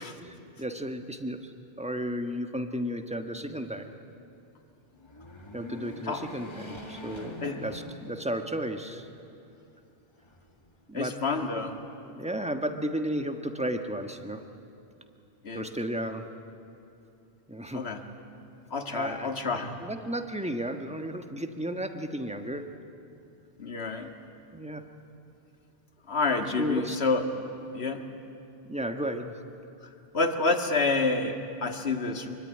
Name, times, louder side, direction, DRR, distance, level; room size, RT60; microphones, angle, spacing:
voice 1, 0.0-3.9 5.5-9.1 10.9-11.2 12.0-14.5 15.5-16.3 17.5-17.9 18.9-19.3 19.8-22.8 24.5-24.9 26.6-27.0 28.7-29.4, equal, 5° right, 6 dB, 1.3 m, -34 dB
sound 1, 4.9-8.5 9.0-9.1 10.2-11.0, left 2 dB, 25° left, 2.1 m, -43 dB
voice 2, 10.9-11.8 15.4-15.7 17.7-18.0 18.7-19.8 23.6-24.1 26.1-27.2 27.7-28.0 30.1-32.3, left 3 dB, 70° left, 6 dB, 2.0 m, -28 dB
25.0 x 23.5 x 9.9 m, 2.7 s
omnidirectional pair, 1.1 m